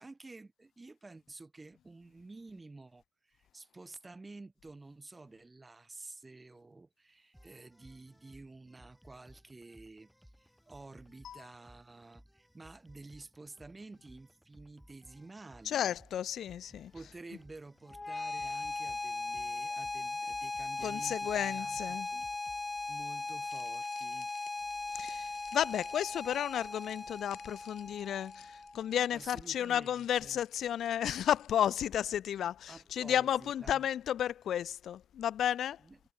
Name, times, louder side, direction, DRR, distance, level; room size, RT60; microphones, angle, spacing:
voice 1, 0.0-16.0 16.9-22.3 22.9-24.3 29.1-30.4 32.7-33.9 35.8-36.0, right 3 dB, 20° right, 1.1 m, -51 dB
sound 1, 7.3-22.7, equal, ahead, 3.5 m, -61 dB
voice 2, 15.7-16.9 20.8-22.1 24.9-35.8, left 10 dB, 65° left, 0.4 m, -33 dB
sound 2, 17.9-28.9, left 3 dB, 20° left, 0.7 m, -38 dB
sound 3, 23.5-31.7, left 14 dB, 85° left, 4.5 m, -60 dB
cardioid pair, 90°, 0 cm